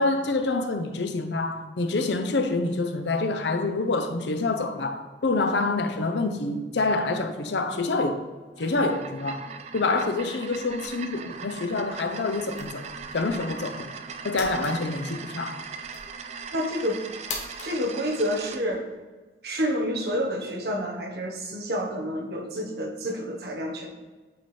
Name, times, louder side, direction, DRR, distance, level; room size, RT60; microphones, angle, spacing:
voice 1, 0.0-8.2 8.6-9.5 9.7-13.9 14.2-15.6, left 3 dB, 85° left, 0.6 m, -27 dB
sound 1, 8.5-18.6, right 5 dB, 40° right, 0.3 m, -40 dB
sound 2, 10.8-18.9, left 3 dB, 45° left, 1.0 m, -44 dB
voice 2, 16.5-17.0 17.6-18.9 19.4-23.9, equal, 65° right, 1.1 m, -29 dB
8.5 x 4.2 x 3.3 m
head